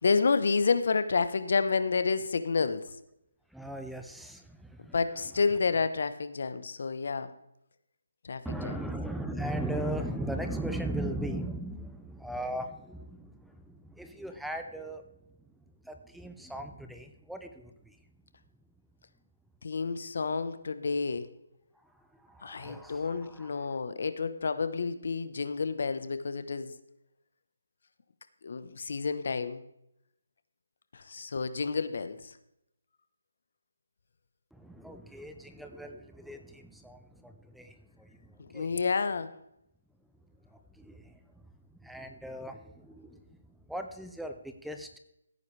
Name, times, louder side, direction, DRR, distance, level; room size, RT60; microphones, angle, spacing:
voice 1, 0.0-2.8 4.9-7.3 8.2-8.8 19.6-21.3 22.4-26.7 28.4-29.6 30.9-32.4 38.4-39.3, left 4 dB, 60° left, 12 dB, 1.1 m, -29 dB
voice 2, 3.5-4.9 8.4-15.0 15.8-18.0 22.2-23.8 34.5-38.7 40.5-41.2 41.8-43.2 43.7-45.0, right 1 dB, ahead, 6 dB, 0.5 m, -38 dB
16.5 x 9.5 x 3.4 m, 0.82 s
hypercardioid pair, 160°, 0 cm